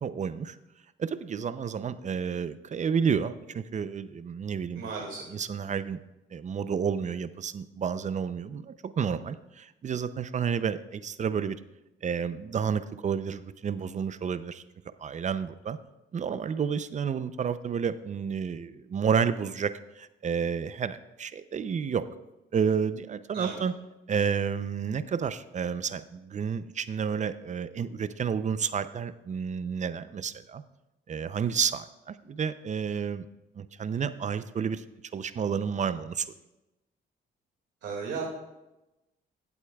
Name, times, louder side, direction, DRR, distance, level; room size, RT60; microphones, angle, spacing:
voice 1, 0.0-0.6 1.0-6.0 6.3-11.6 12.0-14.6 15.0-15.8 16.1-22.1 22.5-23.7 24.1-30.6 31.1-33.3 33.6-34.8 35.1-36.3, right 7 dB, 40° right, 13 dB, 0.5 m, -30 dB
voice 2, 4.7-5.2 23.3-23.6 37.8-38.2, right 5 dB, 70° right, -3 dB, 2.1 m, -34 dB
16.0 x 8.1 x 2.3 m, 0.97 s
cardioid pair, 90°, 20 cm